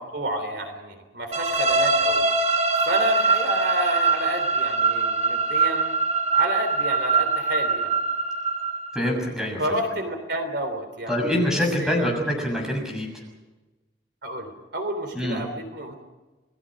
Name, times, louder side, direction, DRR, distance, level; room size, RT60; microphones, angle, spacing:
voice 1, 0.0-2.3 2.8-5.9 6.3-8.0 9.6-11.4 11.8-12.1 14.2-15.9, right 1 dB, 60° right, 6 dB, 3.3 m, -30 dB
sound 1, 1.3-9.1, right 4 dB, 35° right, 1.4 m, -23 dB
voice 2, 8.9-9.8 11.1-13.1 15.1-15.4, left 1 dB, 5° right, 1 dB, 6.9 m, -25 dB
29.0 x 20.0 x 6.4 m, 1.2 s
head